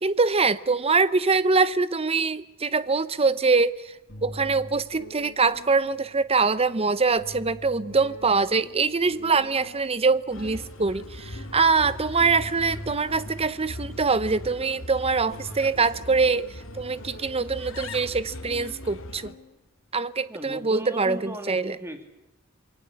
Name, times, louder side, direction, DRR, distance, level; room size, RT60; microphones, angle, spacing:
voice 1, 0.0-3.9 4.2-19.3 19.9-21.8, right 4 dB, 30° right, 0.9 m, -24 dB
sound 1, 4.1-20.0, equal, 50° left, 6.3 m, -45 dB
Bird, 10.3-19.3, left 2 dB, 65° left, 2.1 m, -41 dB
voice 2, 20.3-22.0, equal, 10° right, 3.1 m, -37 dB
27.5 x 22.5 x 8.6 m
head